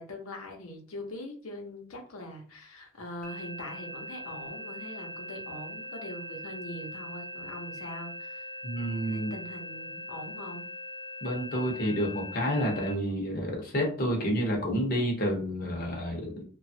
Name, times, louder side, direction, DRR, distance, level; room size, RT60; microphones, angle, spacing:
voice 1, 0.0-8.6 9.1-10.7, left 1 dB, 75° left, 2 dB, 0.8 m, -42 dB
sound 1, 3.2-12.9, left 1 dB, 5° left, 0.5 m, -41 dB
voice 2, 8.6-9.3 11.2-16.4, equal, 45° left, 0 dB, 0.8 m, -29 dB
3.0 x 2.3 x 2.7 m, 0.42 s
head